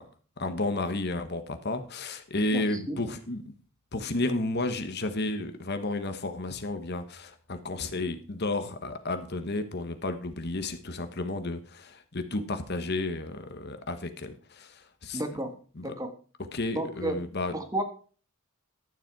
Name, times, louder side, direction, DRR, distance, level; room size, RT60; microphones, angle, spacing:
voice 1, 0.4-3.5 3.9-15.2 15.7-15.9 16.5-17.5, left 2 dB, 50° left, 9 dB, 1.2 m, -32 dB
voice 2, 2.5-3.0 15.1-15.5 15.8-16.1 16.7-17.2 17.5-17.8, right 1 dB, 15° right, 7 dB, 1.4 m, -32 dB
12.0 x 7.5 x 4.6 m, 0.39 s
head